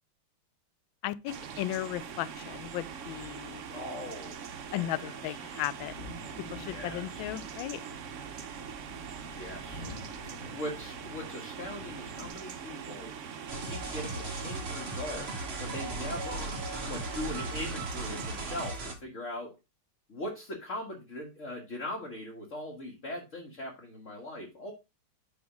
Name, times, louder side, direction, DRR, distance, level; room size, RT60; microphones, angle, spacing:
voice 1, 1.0-3.6 4.7-5.9 6.5-7.8, left 14 dB, 75° left, 1.3 m, -35 dB
sound 1, 1.3-18.7, right 7 dB, 70° right, 0.7 m, -42 dB
voice 2, 3.7-5.6 6.6-7.3 9.3-9.8 10.2-13.1 13.6-15.3 15.6-16.6 16.9-19.5 20.1-24.7, left 1 dB, 40° left, 1.7 m, -40 dB
sound 2, 5.6-12.3, left 1 dB, 20° left, 1.4 m, -48 dB
sound 3, 13.5-18.9, right 2 dB, 35° right, 1.3 m, -37 dB
9.4 x 3.2 x 6.0 m
omnidirectional pair, 2.4 m